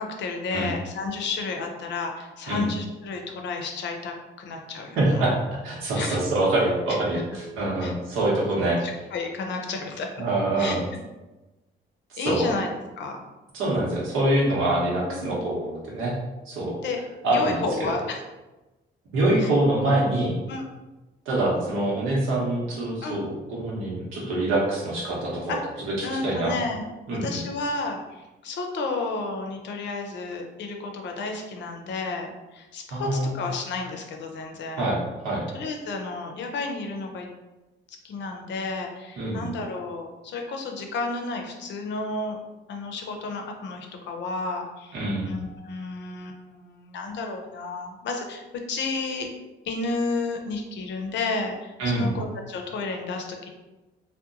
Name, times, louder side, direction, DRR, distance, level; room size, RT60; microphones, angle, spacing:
voice 1, 0.0-5.2 6.0-6.2 7.1-7.2 7.8-7.9 8.8-10.1 10.6-10.8 12.2-12.7 13.0-13.2 15.1-15.3 16.8-17.0 17.3-18.2 19.4-19.5 20.5-20.6 23.0-23.2 25.5-25.6 26.0-26.9 27.2-34.8 35.5-37.3 37.9-42.4 42.7-49.3 49.6-53.5, left 3 dB, 65° left, 3 dB, 0.5 m, -32 dB
voice 2, 5.0-5.4 5.6-8.8 10.2-10.8 12.1-12.5 13.5-16.1 16.5-16.8 17.2-17.9 19.1-20.3 21.2-26.6 27.1-27.4 32.9-33.4 34.8-35.0 35.2-35.4 39.2-39.4 44.9-45.3 51.8-52.1, right 1 dB, 90° right, -4 dB, 0.9 m, -25 dB
2.8 x 2.1 x 2.4 m, 1.1 s
cardioid pair, 90°, 20 cm